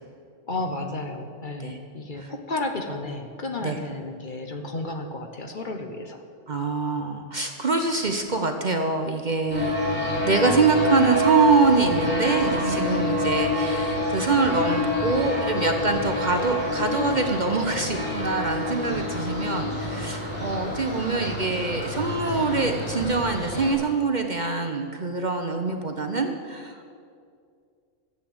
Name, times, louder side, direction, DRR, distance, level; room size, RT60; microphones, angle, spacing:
voice 1, 0.5-6.2, left 2 dB, 45° left, 5 dB, 1.1 m, -32 dB
voice 2, 6.5-9.8 10.2-26.8, right 4 dB, 40° right, 5 dB, 0.8 m, -24 dB
sound 1, 9.5-23.7, left 1 dB, 10° left, 4.5 m, -27 dB
14.0 x 8.2 x 7.9 m, 2.3 s
omnidirectional pair, 1.3 m